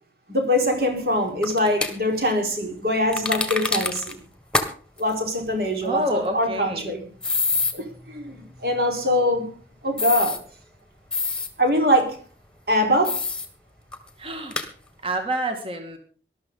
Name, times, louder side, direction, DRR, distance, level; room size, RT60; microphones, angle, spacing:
voice 1, 0.3-4.2 5.0-7.0 7.7-9.5 9.8-10.4 11.6-12.2 12.7-13.2, equal, 60° right, 3 dB, 4.7 m, -23 dB
sound 1, 1.4-1.9 3.1-4.1 4.5-4.7 5.0-5.1 7.2-7.7 10.0-10.4 11.1-11.5 13.0-13.5 13.9-14.0 14.5-14.7, left 3 dB, 5° left, 1.6 m, -25 dB
voice 2, 5.8-6.9 14.2-14.6 15.0-16.0, right 1 dB, 30° right, 5 dB, 2.0 m, -28 dB
20.0 x 12.5 x 4.0 m, 0.40 s
head